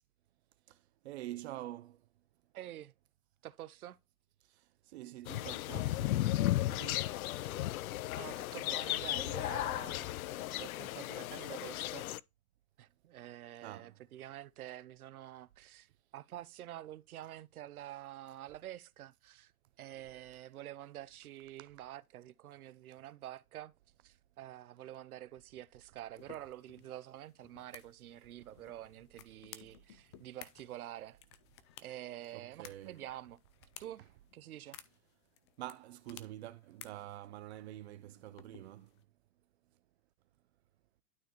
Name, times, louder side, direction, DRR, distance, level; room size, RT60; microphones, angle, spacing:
voice 1, 1.0-2.0 4.9-7.1 13.6-14.0 21.6-21.7 32.3-33.1 35.6-38.9, right 14 dB, 50° right, 0.6 m, -47 dB
voice 2, 2.5-2.9 3.4-4.0 8.1-12.1 12.8-19.5 19.8-23.7 24.0-31.2 31.8-33.4 33.8-34.0 34.3-34.8, right 13 dB, 90° right, 0.7 m, -48 dB
sound 1, 5.3-12.2, left 15 dB, 75° left, 0.6 m, -35 dB
sound 2, 26.2-39.0, left 11 dB, 25° left, 0.3 m, -58 dB
12.0 x 4.2 x 3.0 m
hypercardioid pair, 140°, 42 cm